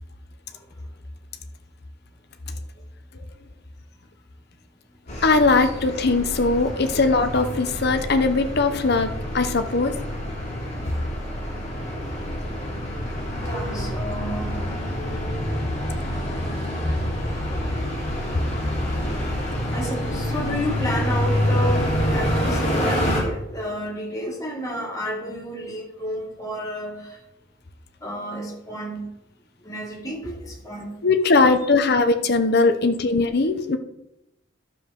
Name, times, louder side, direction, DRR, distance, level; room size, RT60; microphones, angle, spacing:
sound 1, 5.1-23.2, equal, 35° left, 3.0 m, -27 dB
voice 1, 5.2-9.9 31.0-33.8, left 3 dB, 50° left, 8 dB, 0.8 m, -20 dB
voice 2, 13.4-14.6 19.7-27.2 28.0-29.1 29.6-30.9, equal, 15° left, -1 dB, 2.1 m, -31 dB
12.0 x 7.1 x 3.7 m, 0.86 s
head